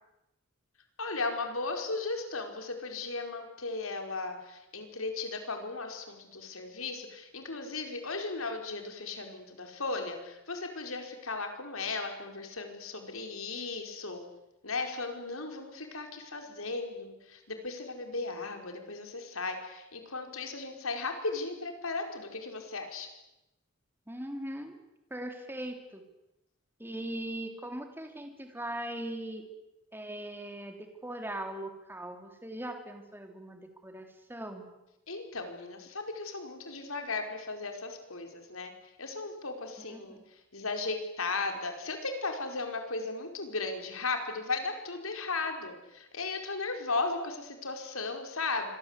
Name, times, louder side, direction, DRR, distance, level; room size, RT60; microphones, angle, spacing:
voice 1, 1.0-14.2 14.6-23.1 35.1-38.7 39.0-40.2 40.5-48.7, left 3 dB, 80° left, 5 dB, 5.1 m, -36 dB
voice 2, 24.1-24.8 25.1-26.0 26.8-29.4 29.9-34.7 39.8-40.2, right 1 dB, 10° right, 5 dB, 3.4 m, -40 dB
26.5 x 24.0 x 8.4 m, 0.91 s
head